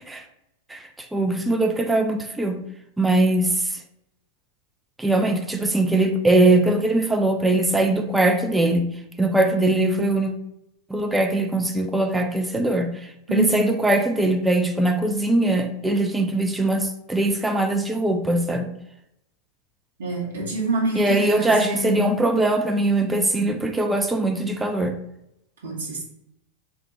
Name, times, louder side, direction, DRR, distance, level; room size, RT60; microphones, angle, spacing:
voice 1, 1.1-2.6 3.0-3.5 5.0-8.9 9.2-10.3 10.9-12.9 13.3-18.7 20.9-25.0, right 2 dB, 10° right, 5 dB, 0.3 m, -21 dB
voice 2, 13.3-13.6 20.0-22.1 25.6-26.0, right 2 dB, 60° right, -2 dB, 0.8 m, -26 dB
3.5 x 2.2 x 2.9 m, 0.81 s
figure-of-eight pair, 90°, 0 cm